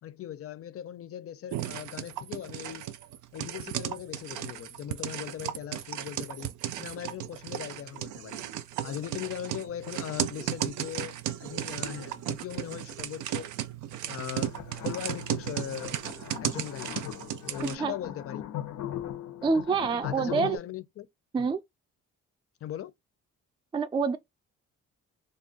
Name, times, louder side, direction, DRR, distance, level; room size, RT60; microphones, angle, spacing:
voice 1, 0.0-2.9 3.3-8.5 8.8-13.5 14.0-16.0 16.4-17.1 17.5-18.6 20.0-21.1 21.4-21.5 22.6-22.9, left 10 dB, 50° left, 0.6 m, -39 dB
sound 1, 1.5-17.8, right 12 dB, 80° right, 0.5 m, -35 dB
sound 2, 14.4-20.6, left 11 dB, 85° left, 0.8 m, -39 dB
voice 2, 17.6-17.9 19.4-20.6 21.3-21.6 23.7-24.2, right 5 dB, 15° right, 0.3 m, -27 dB
2.5 x 2.2 x 3.8 m
cardioid pair, 90°, 30 cm